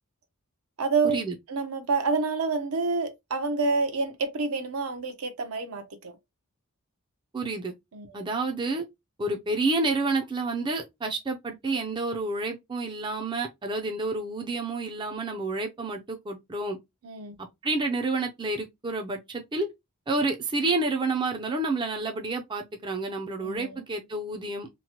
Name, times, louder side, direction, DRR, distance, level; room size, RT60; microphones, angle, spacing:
voice 1, 0.8-1.2 1.5-6.2 7.9-8.2 17.0-17.4 23.4-23.8, right 4 dB, 80° right, 0.7 m, -28 dB
voice 2, 7.3-7.7 8.1-8.9 9.2-16.8 17.6-19.7 20.1-24.7, right 3 dB, 20° right, 0.4 m, -29 dB
3.0 x 2.1 x 2.8 m
head